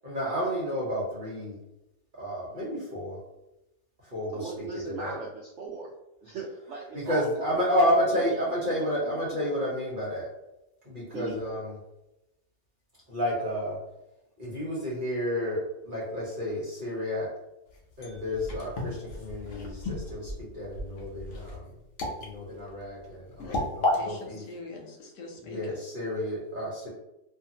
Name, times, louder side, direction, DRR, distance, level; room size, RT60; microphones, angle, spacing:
voice 1, 0.0-1.6 2.2-3.2 4.0-5.1 6.9-10.3 10.8-11.7 13.1-13.8 14.4-17.3 18.0-21.7 22.2-24.4 25.4-26.9, equal, 40° right, -6 dB, 0.8 m, -31 dB
voice 2, 4.3-5.9 6.2-7.5 7.8-9.5 11.1-11.4, right 3 dB, 85° right, -3 dB, 0.6 m, -38 dB
sound 1, 17.7-24.0, left 2 dB, 60° left, 0.8 m, -33 dB
voice 3, 23.9-25.8, left 2 dB, 85° left, 1 dB, 1.3 m, -43 dB
2.6 x 2.5 x 2.7 m, 0.92 s
omnidirectional pair, 1.8 m